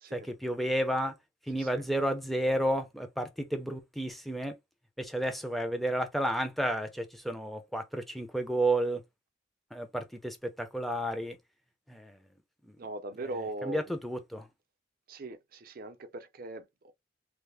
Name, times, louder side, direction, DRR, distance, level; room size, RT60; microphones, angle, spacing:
voice 1, 0.1-1.1 1.5-4.5 5.0-9.0 9.7-11.4 11.9-12.2 13.6-14.5, right 1 dB, ahead, 0.5 m, -31 dB
voice 2, 12.8-13.8 15.1-16.9, right 2 dB, 50° right, 0.6 m, -40 dB
3.2 x 2.1 x 3.3 m
head